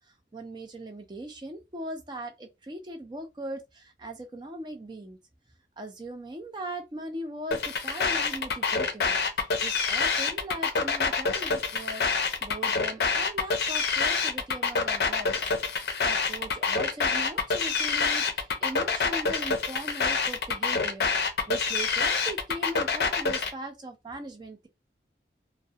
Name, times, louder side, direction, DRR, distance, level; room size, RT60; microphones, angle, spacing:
voice 1, 0.3-5.2 5.8-15.4 16.0-24.7, right 1 dB, 25° right, 0.4 m, -39 dB
sound 1, 7.5-23.5, left 4 dB, 60° left, 0.5 m, -26 dB
2.2 x 2.0 x 2.7 m
head